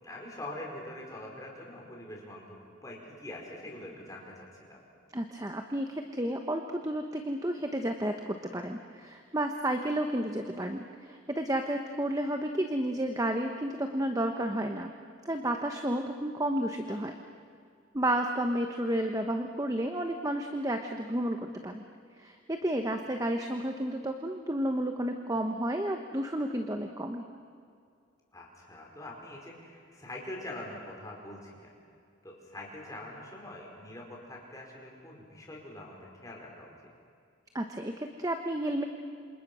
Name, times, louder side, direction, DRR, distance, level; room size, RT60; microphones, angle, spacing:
voice 1, 0.0-4.8 28.3-31.7 32.2-36.7, left 1 dB, 15° left, -2 dB, 5.1 m, -44 dB
voice 2, 5.1-14.9 15.2-17.2 17.9-21.8 22.2-27.2 37.5-38.8, right 1 dB, 15° right, 5 dB, 1.1 m, -31 dB
27.5 x 27.5 x 6.3 m, 2.3 s
head